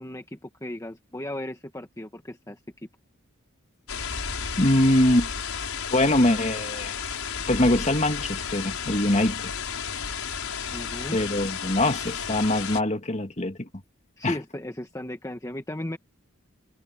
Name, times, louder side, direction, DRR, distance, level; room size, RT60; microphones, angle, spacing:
voice 1, 0.0-2.6 10.7-11.2 14.2-16.0, left 1 dB, 15° left, 1.3 m, -35 dB
sound 1, 3.9-12.8, left 6 dB, 90° left, 5.3 m, -32 dB
voice 2, 4.6-5.3 5.9-7.0 7.5-9.5 11.1-13.7 14.2-14.4, left 1 dB, 35° left, 2.2 m, -23 dB
head